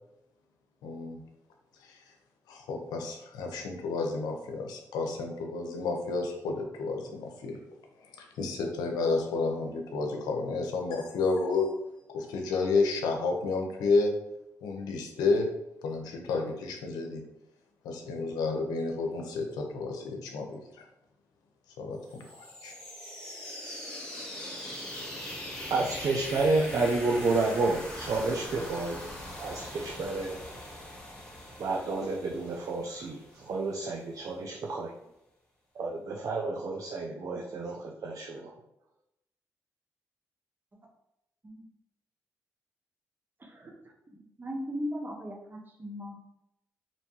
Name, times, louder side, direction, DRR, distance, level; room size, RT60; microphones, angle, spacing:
voice 1, 0.8-1.2 1.8-2.0 2.5-7.6 8.0-11.7 12.1-14.1 14.6-15.5 15.8-17.2 17.8-20.9 21.8-22.7, left 3 dB, 85° left, 2 dB, 0.5 m, -31 dB
sound 1, 22.1-33.8, left 1 dB, 10° left, 1.1 m, -41 dB
voice 2, 25.7-30.4 31.6-34.9 35.8-38.5, right 3 dB, 60° right, 0 dB, 0.4 m, -30 dB
voice 3, 43.4-43.8 44.1-46.3, equal, 30° right, 0 dB, 0.8 m, -38 dB
2.6 x 2.2 x 2.9 m, 0.85 s
supercardioid pair, 55°, 7 cm